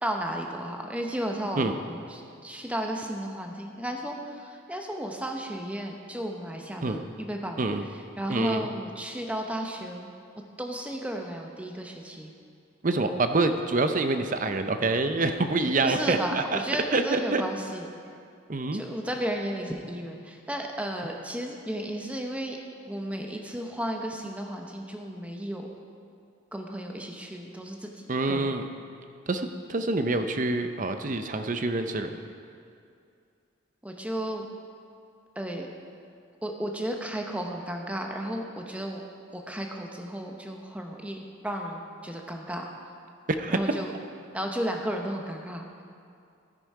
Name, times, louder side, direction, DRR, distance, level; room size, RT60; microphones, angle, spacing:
voice 1, 0.0-7.7 8.2-10.1 10.6-12.3 15.8-17.9 18.7-22.6 22.9-25.7 26.5-28.5 33.8-34.5 35.4-35.7 36.4-39.0 39.3-41.2 41.4-42.7 43.5-43.9 44.3-45.8, right 1 dB, 5° right, 2 dB, 0.9 m, -33 dB
voice 2, 8.3-8.7 12.8-16.6 16.9-17.4 18.5-18.8 28.1-28.7 29.3-32.1 43.3-43.6, right 2 dB, 40° right, 8 dB, 0.6 m, -26 dB
12.5 x 9.8 x 4.8 m, 2.4 s
head